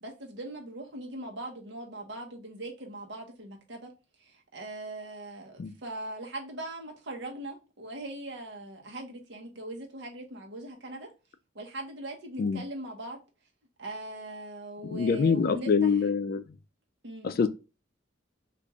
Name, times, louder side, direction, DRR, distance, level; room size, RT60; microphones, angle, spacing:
voice 1, 0.0-3.9 4.2-11.1 11.5-13.2 13.8-15.7 17.0-17.4, right 1 dB, 60° right, 0.9 m, -40 dB
voice 2, 14.8-16.4 17.2-17.5, left 5 dB, 50° left, 0.3 m, -25 dB
3.0 x 2.5 x 3.4 m
head